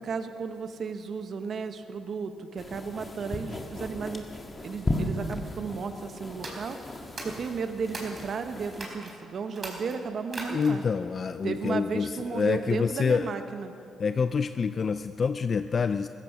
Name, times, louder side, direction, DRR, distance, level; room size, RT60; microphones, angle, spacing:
voice 1, 0.0-4.2 4.6-6.8 7.2-10.8 11.4-13.7, right 5 dB, 55° right, 8 dB, 1.2 m, -34 dB
sound 1, 2.6-8.8, left 2 dB, 25° left, 1.8 m, -36 dB
sound 2, 6.3-8.3 8.7-9.1 9.5-10.9, right 2 dB, 35° right, 4.1 m, -40 dB
voice 2, 10.5-13.3 14.0-16.1, left 5 dB, 45° left, 11 dB, 0.4 m, -27 dB
15.5 x 15.0 x 6.1 m, 2.8 s
cardioid pair, 90°, 0 cm